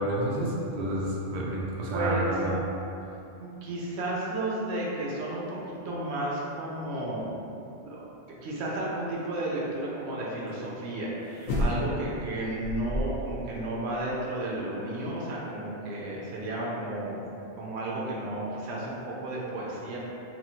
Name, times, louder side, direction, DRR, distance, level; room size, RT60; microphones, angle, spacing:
voice 1, 0.0-2.6, right 1 dB, 60° right, -4 dB, 0.5 m, -29 dB
voice 2, 1.9-2.4 3.4-5.6 5.8-7.4 7.8-17.2 17.6-20.0, right 1 dB, 75° right, -5 dB, 0.9 m, -33 dB
sound 1, 11.4-12.1 12.6-13.4 13.7-13.8, equal, 55° left, 0.6 m, -29 dB
2.9 x 2.3 x 2.7 m, 2.7 s
omnidirectional pair, 1.2 m